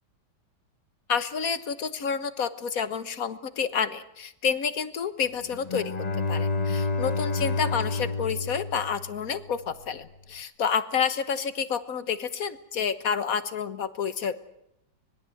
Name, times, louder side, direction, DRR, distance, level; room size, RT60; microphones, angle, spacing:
voice 1, 1.1-5.9 6.3-14.4, left 6 dB, 55° left, 12 dB, 1.6 m, -29 dB
Bowed string instrument, 5.5-9.6, left 3 dB, 30° left, 0.9 m, -29 dB
25.0 x 20.5 x 7.8 m, 0.80 s
omnidirectional pair, 1.9 m